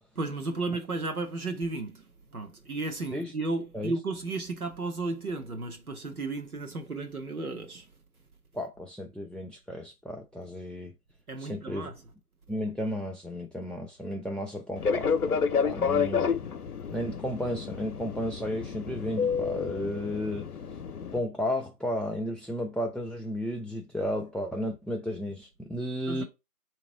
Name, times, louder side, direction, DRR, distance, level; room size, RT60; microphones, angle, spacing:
voice 1, 0.2-7.9 11.3-12.0 26.1-26.2, right 3 dB, 70° right, 1.1 m, -34 dB
voice 2, 8.5-10.9 11.4-11.9 12.5-15.4 15.6-16.3 16.9-20.5 21.1-26.2, left 1 dB, ahead, 0.3 m, -33 dB
Fixed-wing aircraft airplane, 14.8-21.2, left 6 dB, 75° left, 0.7 m, -30 dB
3.5 x 3.0 x 3.7 m
figure-of-eight pair, 170°, 46 cm